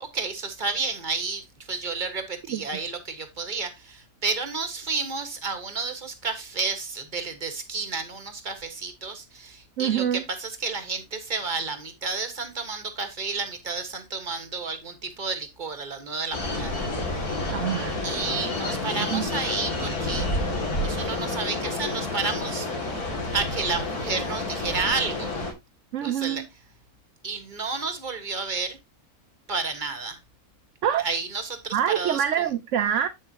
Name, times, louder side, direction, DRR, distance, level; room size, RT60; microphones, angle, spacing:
voice 1, 0.1-16.9 18.0-20.3 20.8-22.7 23.3-25.3 26.0-26.4 27.2-28.8 29.5-30.2 31.0-32.4, right 4 dB, 35° right, 1.6 m, -31 dB
voice 2, 9.8-10.2 17.5-18.1 18.9-19.3 25.9-26.5 30.8-31.0 31.7-33.1, right 9 dB, 65° right, 0.9 m, -25 dB
sound 1, 16.3-25.5, left 2 dB, 90° left, 2.9 m, -29 dB
8.7 x 7.3 x 2.8 m
omnidirectional pair, 1.5 m